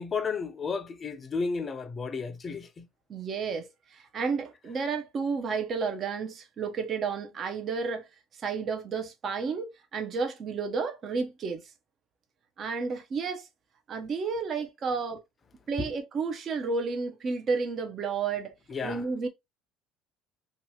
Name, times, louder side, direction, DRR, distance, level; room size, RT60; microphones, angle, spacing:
voice 1, 0.0-2.9 15.8-15.9 18.7-19.0, left 5 dB, 30° left, 0.5 m, -33 dB
voice 2, 3.1-8.0 8.4-11.6 12.6-13.5 13.9-15.2 15.7-18.5 18.8-19.3, right 5 dB, 45° right, 0.7 m, -31 dB
2.7 x 2.3 x 2.8 m
supercardioid pair, 90°, 0 cm